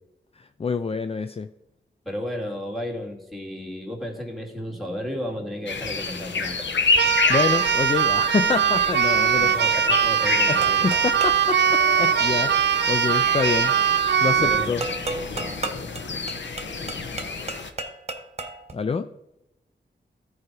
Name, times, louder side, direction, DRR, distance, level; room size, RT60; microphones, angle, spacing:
voice 1, 0.4-1.5 7.3-9.6 10.5-13.7 14.2-14.9 18.7-19.1, left 5 dB, 30° left, 10 dB, 0.4 m, -27 dB
voice 2, 2.1-6.7 9.4-11.0 14.4-14.8, equal, ahead, -2 dB, 2.3 m, -33 dB
sound 1, 5.7-17.7, left 4 dB, 80° left, 0.9 m, -29 dB
Keyboard (musical), 6.9-14.7, right 8 dB, 70° right, 0.5 m, -21 dB
sound 2, 10.6-11.5 14.8-18.7, right 3 dB, 35° right, 1.0 m, -34 dB
13.5 x 4.9 x 4.7 m, 0.90 s
wide cardioid pair, 75°, 19 cm